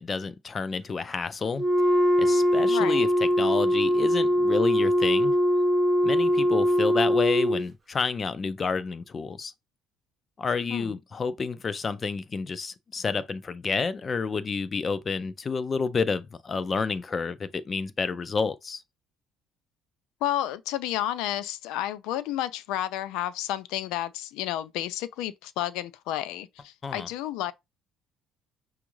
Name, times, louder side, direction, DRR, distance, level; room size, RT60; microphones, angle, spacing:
voice 1, 0.0-1.7 2.2-5.3 6.0-9.5 10.4-18.8 26.8-27.1, left 5 dB, 25° left, 0.4 m, -29 dB
Wind instrument woodwind instrument, 1.5-7.7, equal, 20° right, 0.6 m, -22 dB
voice 2, 2.7-3.1 10.7-11.0 20.2-27.5, left 12 dB, 90° left, 0.4 m, -31 dB
6.2 x 2.4 x 3.0 m
cardioid pair, 165°, 0 cm